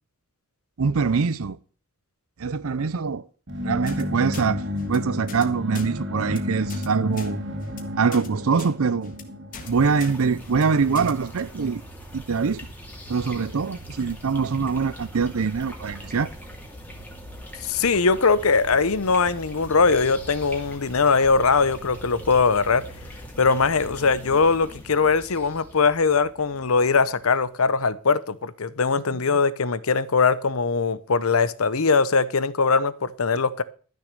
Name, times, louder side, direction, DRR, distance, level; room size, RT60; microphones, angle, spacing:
voice 1, 0.8-1.6 2.4-3.2 3.6-7.4 8.0-9.1 9.7-11.8 12.1-12.7 13.1-16.3, right 5 dB, 70° right, 0.5 m, -24 dB
sound 1, 3.5-11.2, left 1 dB, 55° right, 2.3 m, -32 dB
sound 2, 3.9-4.0 4.3-4.5 4.8-5.0 5.3-5.4 5.7-5.9 6.2-6.4 6.7-6.9 7.1-7.3 7.6-7.8 8.1-8.3 8.6-8.7 9.0-9.2 9.5-9.7 10.0-10.1 10.4-10.6 10.9-11.1, left 5 dB, 40° left, 1.8 m, -40 dB
sound 3, 9.5-27.7, equal, 10° left, 2.4 m, -41 dB
voice 2, 17.6-22.9 23.4-33.6, left 4 dB, 75° left, 0.8 m, -21 dB
13.0 x 6.6 x 6.6 m
head